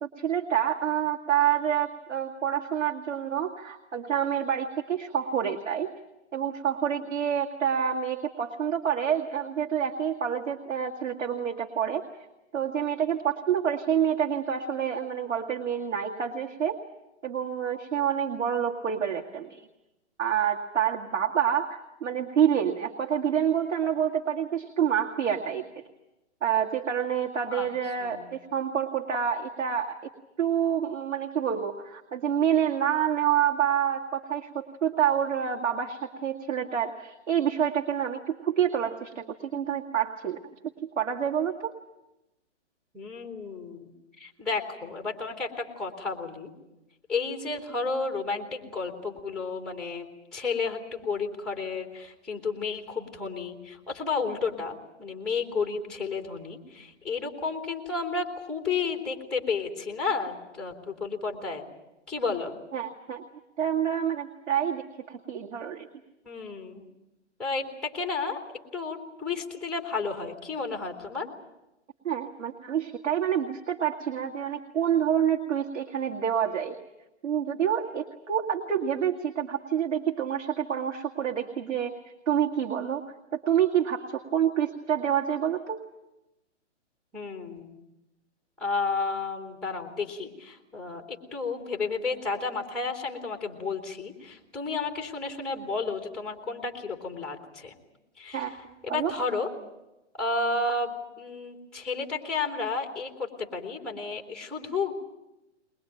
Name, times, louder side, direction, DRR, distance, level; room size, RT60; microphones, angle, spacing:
voice 1, 0.0-5.9 6.3-12.0 12.5-16.8 17.2-19.7 20.2-25.7 26.4-30.0 30.4-40.4 41.0-41.8 62.7-63.2 63.6-64.8 65.1-65.9 72.0-76.8 77.2-82.0 82.3-83.0 83.3-85.8 98.3-98.5 98.9-99.1, right 9 dB, 90° right, 1 dB, 2.1 m, -27 dB
voice 2, 42.9-46.5 47.1-50.1 50.3-61.6 62.1-62.5 66.2-66.9 67.4-68.4 68.7-71.3 87.1-87.7 88.6-97.7 98.2-98.5 98.8-99.5 100.2-104.9, left 4 dB, ahead, 3 dB, 2.7 m, -32 dB
21.5 x 21.5 x 9.0 m, 0.95 s
hypercardioid pair, 145°, 36 cm